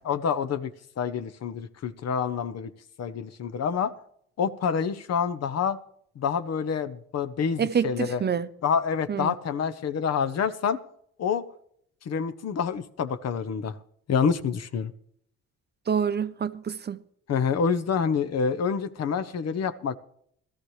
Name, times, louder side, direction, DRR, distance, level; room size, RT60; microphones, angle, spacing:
voice 1, 0.1-0.7 1.0-2.7 3.0-3.9 4.4-5.8 6.2-8.2 8.6-10.8 11.2-11.4 12.0-13.8 14.1-14.9 17.3-20.0, left 6 dB, 60° left, 0.9 m, -27 dB
voice 2, 7.6-8.5 9.1-9.3 15.9-17.0, right 7 dB, 35° right, 0.7 m, -27 dB
16.5 x 13.5 x 3.2 m
cardioid pair, 90°, 30 cm